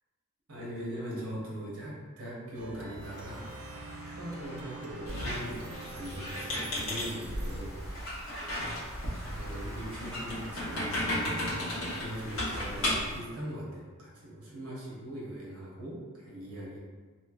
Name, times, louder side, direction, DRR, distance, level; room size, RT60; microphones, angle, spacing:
voice 1, 0.5-3.5 4.0-7.8 8.5-16.8, equal, 90° right, -5 dB, 1.0 m, -41 dB
Plucked string instrument, 2.6-7.9, right 2 dB, 70° right, 0.3 m, -46 dB
Traffic noise roadway noise, 3.0-13.0, equal, 15° right, 1.1 m, -48 dB
Squeak, 5.1-13.2, left 1 dB, 65° left, 1.0 m, -35 dB
3.1 x 2.8 x 2.3 m, 1.4 s
head